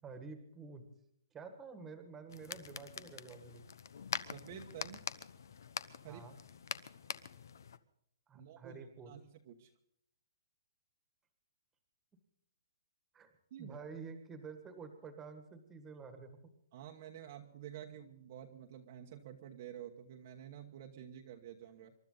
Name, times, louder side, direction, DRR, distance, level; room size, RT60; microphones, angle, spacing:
voice 1, 0.0-0.8 1.3-3.6 6.1-6.4 8.3-9.1 13.1-13.3 13.6-16.3, right 5 dB, 10° right, 8 dB, 1.7 m, -49 dB
sound 1, 2.3-7.8, left 7 dB, 60° left, 1.0 m, -44 dB
voice 2, 4.2-5.0 6.0-6.3 8.3-9.7 13.5-13.9 16.7-21.9, right 10 dB, 35° right, 2 dB, 1.2 m, -50 dB
27.5 x 12.5 x 3.9 m, 0.73 s
hypercardioid pair, 175°, 2 cm